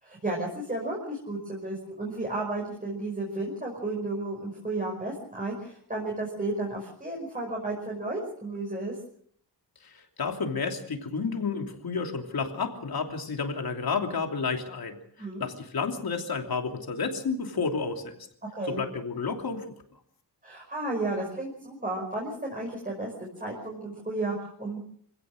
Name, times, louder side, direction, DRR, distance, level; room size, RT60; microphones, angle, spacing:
voice 1, 0.0-8.9 15.2-15.5 18.5-18.8 20.4-23.1 23.4-24.8, right 2 dB, 20° right, -2 dB, 5.5 m, -33 dB
voice 2, 9.8-18.1 18.7-19.6, left 5 dB, 60° left, 3 dB, 3.1 m, -31 dB
26.0 x 17.0 x 6.5 m, 0.64 s
wide cardioid pair, 165°, 41 cm